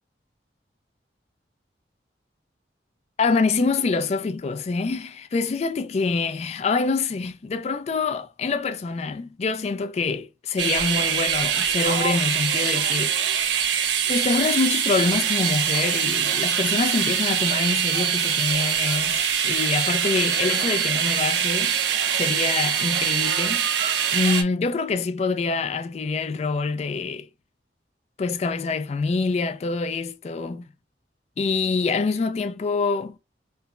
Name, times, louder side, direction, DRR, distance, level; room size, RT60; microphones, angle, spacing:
voice 1, 3.2-13.6 14.1-21.8 22.1-23.7 24.1-27.3 28.2-30.7 31.4-33.2, left 4 dB, 35° left, 0.3 m, -25 dB
sound 1, 10.6-24.4, right 8 dB, 80° right, 0.5 m, -23 dB
4.5 x 2.0 x 2.4 m
head